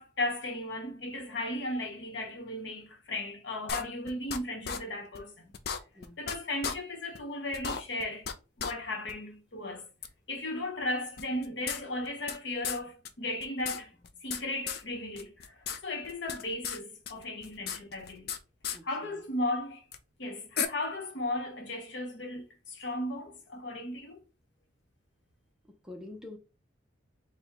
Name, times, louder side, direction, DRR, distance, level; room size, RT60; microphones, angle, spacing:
voice 1, 0.0-5.4 6.2-8.3 8.6-9.9 10.3-13.9 14.2-18.3 18.8-19.8 20.2-24.2, left 1 dB, 70° left, 0.9 m, -36 dB
sound 1, 3.7-4.4 4.6-4.8 5.1-5.2 5.5-6.3 6.6-6.7 7.1-7.2 7.5-8.3 8.6-8.7 9.1-9.2 10.0-10.1 11.2-12.4 12.6-12.8 13.0-13.1 13.4-14.4 14.7-14.8 15.1-15.8 16.0-16.8 17.0-18.4 18.6-18.8 19.9-20.0 20.6-20.7, left 7 dB, 55° left, 0.4 m, -34 dB
voice 2, 18.7-19.2 25.7-26.4, left 2 dB, 5° right, 0.5 m, -46 dB
4.5 x 2.1 x 3.5 m
head